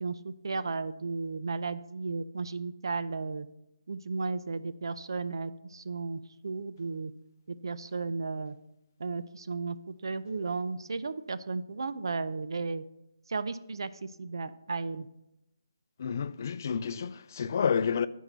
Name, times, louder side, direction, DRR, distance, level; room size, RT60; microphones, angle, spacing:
voice 1, 0.0-3.5 3.9-7.1 7.5-8.6 9.0-12.8 13.3-13.9 14.2-15.1, right 4 dB, 75° right, 0.4 m, -34 dB
voice 2, 16.0-18.1, left 6 dB, 45° left, 0.3 m, -29 dB
13.0 x 4.7 x 3.9 m
hypercardioid pair, 165°, 2 cm